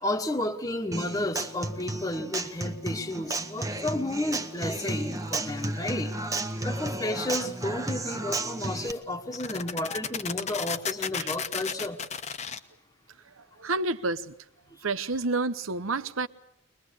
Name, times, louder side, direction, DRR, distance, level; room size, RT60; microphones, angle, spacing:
voice 1, 0.0-6.1 6.6-12.0 14.7-14.8, left 1 dB, 15° left, 1.4 m, -32 dB
Human voice / Acoustic guitar, 0.9-8.9, right 2 dB, 15° right, 1.1 m, -33 dB
sound 1, 4.8-5.2 8.3-8.4 8.9-9.0 9.3-12.6, left 7 dB, 35° left, 1.1 m, -33 dB
voice 2, 13.6-14.3 14.8-16.3, right 3 dB, 85° right, 1.0 m, -29 dB
23.5 x 21.5 x 8.1 m
head